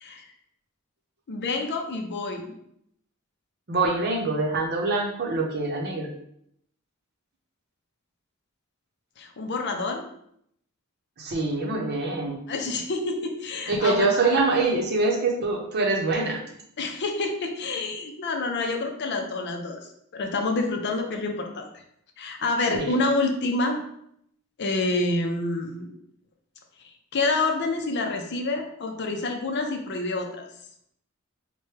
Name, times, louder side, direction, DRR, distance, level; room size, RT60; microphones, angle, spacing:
voice 1, 1.3-2.5 9.2-10.0 12.5-14.1 16.8-19.8 20.1-21.8 22.2-23.8 24.6-25.9 27.1-30.5, left 3 dB, 55° left, 3 dB, 0.5 m, -27 dB
voice 2, 3.7-6.1 11.2-12.4 13.7-16.4 22.7-22.9, right 3 dB, 50° right, 1 dB, 0.7 m, -24 dB
4.5 x 2.2 x 3.1 m, 0.72 s
head